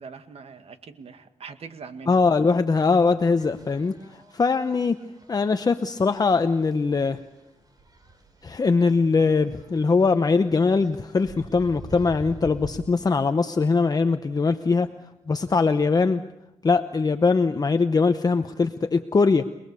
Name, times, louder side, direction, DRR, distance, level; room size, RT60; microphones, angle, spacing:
voice 1, 0.0-2.2, right 5 dB, 65° right, 8 dB, 1.9 m, -42 dB
voice 2, 2.1-3.9 4.3-5.0 5.3-7.2 8.4-14.9 15.3-16.2 16.6-19.5, left 4 dB, 35° left, 8 dB, 0.9 m, -21 dB
sound 1, 3.4-12.9, right 3 dB, 35° right, 5.3 m, -47 dB
28.0 x 20.5 x 6.9 m, 0.94 s
cardioid pair, 85°, 11 cm